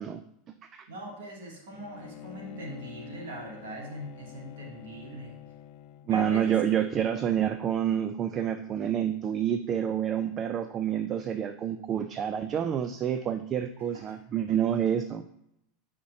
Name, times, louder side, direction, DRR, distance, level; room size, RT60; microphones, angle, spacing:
voice 1, 0.0-0.9 6.1-15.2, right 9 dB, 35° right, 10 dB, 0.4 m, -28 dB
voice 2, 0.9-5.4 6.1-6.6 13.9-14.2, right 1 dB, 85° right, -1 dB, 1.9 m, -41 dB
Bowed string instrument, 1.7-6.4, left 12 dB, 55° left, 0.3 m, -47 dB
7.8 x 5.1 x 2.8 m, 0.77 s
supercardioid pair, 115°, 0 cm